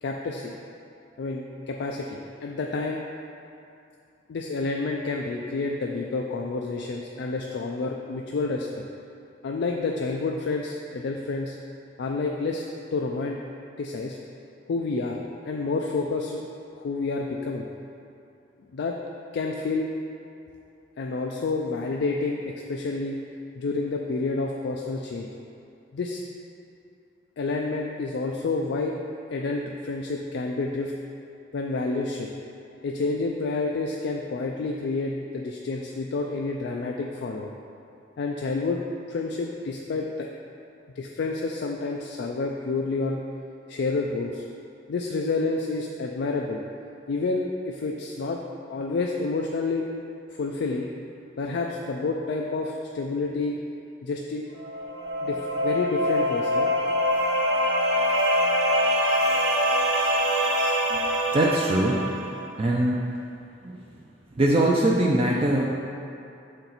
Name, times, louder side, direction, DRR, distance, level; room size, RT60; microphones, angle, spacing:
voice 1, 0.0-0.6 1.2-3.0 4.3-8.7 9.4-11.6 12.0-12.6 12.9-13.4 13.8-14.2 14.7-15.2 15.5-16.4 16.7-17.7 18.7-19.0 19.3-19.9 21.0-23.2 23.6-25.3 25.9-26.2 27.4-28.9 29.3-30.9 31.5-32.3 32.8-37.5 38.2-40.3 41.0-43.2 43.7-44.4 44.9-46.6 47.1-48.4 48.7-49.9 50.3-50.9 51.4-53.6 54.0-54.5 55.2-56.7, left 3 dB, 65° left, 0 dB, 0.4 m, -29 dB
sound 1, 54.6-62.3, equal, 65° right, 1.0 m, -24 dB
voice 2, 60.9-62.0 62.6-63.0 63.6-63.9 64.3-65.6, right 1 dB, 30° right, -3 dB, 0.4 m, -22 dB
6.5 x 4.4 x 4.0 m, 2.6 s
head